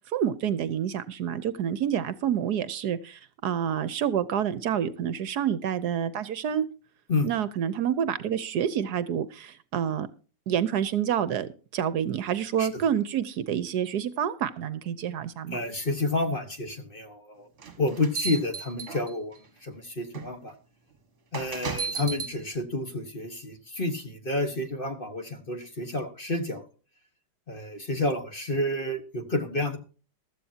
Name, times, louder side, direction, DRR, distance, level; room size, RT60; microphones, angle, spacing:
voice 1, 0.1-6.6 7.2-10.1 10.5-15.6, right 9 dB, 70° right, 15 dB, 1.2 m, -28 dB
voice 2, 15.5-17.5 17.8-19.3 19.6-20.5 21.3-26.6 27.5-29.8, left 2 dB, 35° left, 7 dB, 1.4 m, -30 dB
sound 1, 17.6-19.4 20.1-20.3 21.3-22.3, right 5 dB, 45° right, 1.7 m, -34 dB
15.0 x 13.5 x 2.8 m, 0.35 s
omnidirectional pair, 1.9 m